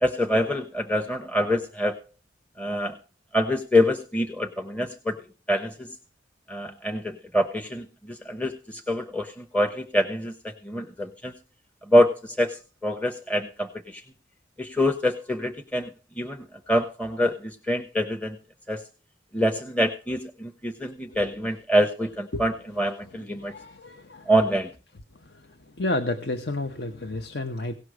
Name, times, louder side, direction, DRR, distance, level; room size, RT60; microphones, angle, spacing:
voice 1, 0.0-1.9 2.6-3.0 3.3-5.2 5.5-5.9 6.5-10.3 10.6-11.3 11.9-14.0 14.6-15.9 16.2-18.4 18.7-18.8 19.3-23.5 24.3-24.7, equal, 10° left, 0.9 m, -25 dB
voice 2, 23.1-24.3 25.2-25.5 25.8-27.7, left 2 dB, 60° left, 1.0 m, -31 dB
17.0 x 6.5 x 6.3 m
head